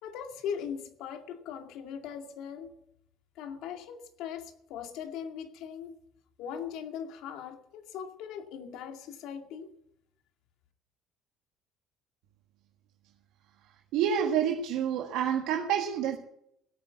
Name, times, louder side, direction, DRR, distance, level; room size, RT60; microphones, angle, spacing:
voice 1, 0.0-2.7 3.4-6.0 6.4-9.7, left 8 dB, 75° left, 2.3 m, -40 dB
voice 2, 13.9-16.2, right 8 dB, 80° right, 1.7 m, -28 dB
16.5 x 9.2 x 8.3 m
cardioid pair, 130°, 0 cm